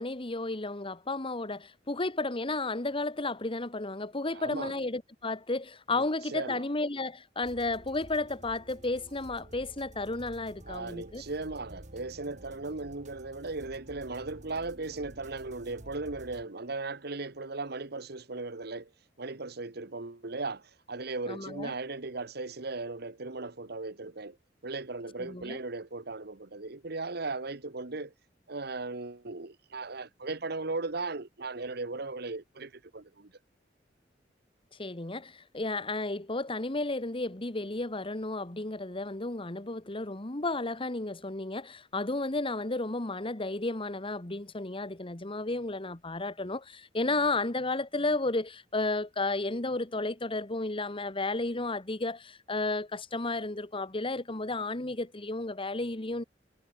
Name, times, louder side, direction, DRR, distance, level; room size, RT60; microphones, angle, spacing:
voice 1, 0.0-11.2 21.3-21.7 25.2-25.6 34.8-56.2, left 2 dB, 30° left, 1.6 m, -33 dB
voice 2, 4.3-4.7 5.9-6.6 10.7-18.9 19.2-24.4 24.6-28.1 28.5-33.3, right 3 dB, 60° right, 1.5 m, -37 dB
sound 1, 7.4-16.4, right 1 dB, 40° right, 2.1 m, -51 dB
head